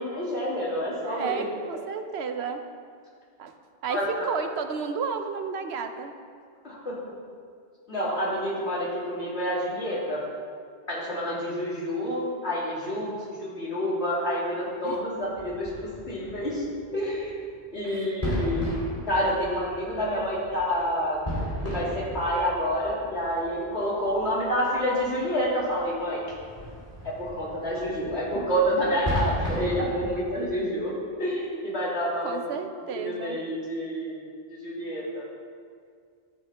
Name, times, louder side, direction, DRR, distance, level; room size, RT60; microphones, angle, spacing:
voice 1, 0.0-1.4 3.9-4.3 6.6-7.0 7.9-10.2 10.9-13.1 13.4-16.7 16.9-17.3 17.7-18.7 19.1-21.2 21.6-26.2 27.0-30.9 31.2-32.4 33.0-34.2 34.5-35.2, equal, 80° left, -6 dB, 2.7 m, -28 dB
voice 2, 1.0-2.6 3.4-3.5 3.8-6.1 14.8-15.0 17.8-18.2 32.2-33.4, right 5 dB, 80° right, 7 dB, 1.0 m, -32 dB
sound 1, 15.2-30.4, equal, 35° left, 2.9 m, -36 dB
12.5 x 8.0 x 3.5 m, 2.1 s
omnidirectional pair, 1.1 m